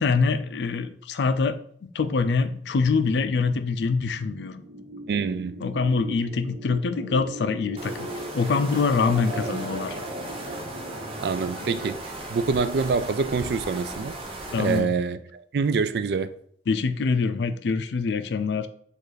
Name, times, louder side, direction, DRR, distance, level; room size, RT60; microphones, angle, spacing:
voice 1, 0.0-1.6 1.9-4.6 5.6-10.0 14.5-14.9 16.7-18.7, left 4 dB, 75° left, 0.4 m, -24 dB
sound 1, 2.6-11.9, right 1 dB, 85° right, 1.1 m, -38 dB
voice 2, 5.1-5.7 9.3-9.6 11.2-14.2 14.5-16.3, right 5 dB, 65° right, 0.3 m, -26 dB
sound 2, 7.8-14.8, right 2 dB, 30° right, 0.7 m, -37 dB
5.3 x 2.5 x 3.9 m
head